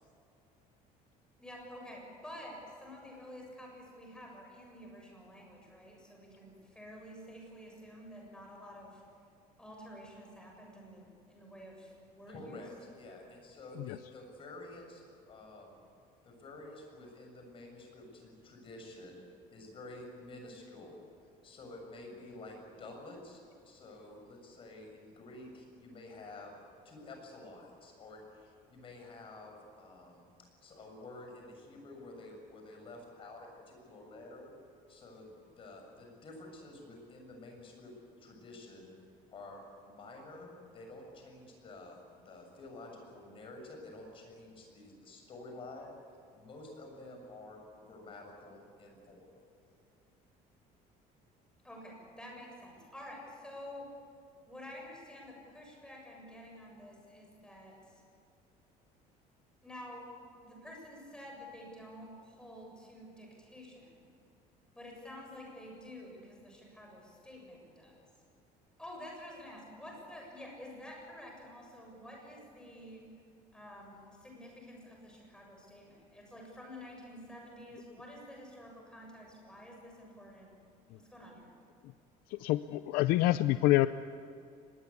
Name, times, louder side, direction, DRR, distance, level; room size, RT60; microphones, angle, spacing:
voice 1, 1.4-9.0 9.6-12.6 51.6-53.9 54.5-58.0 59.6-64.1 64.8-68.0 68.8-73.0 73.5-80.5 81.0-81.5, left 1 dB, 5° left, 0 dB, 7.3 m, -50 dB
voice 2, 12.3-15.8 16.2-19.2 19.5-26.6 26.9-30.3 30.6-34.5 34.9-38.9 39.3-45.9 46.3-49.3, left 2 dB, 35° left, 2 dB, 7.0 m, -50 dB
voice 3, 82.3-83.9, left 16 dB, 75° left, 13 dB, 0.6 m, -26 dB
24.5 x 21.0 x 8.5 m, 2.5 s
cardioid pair, 155°, 16 cm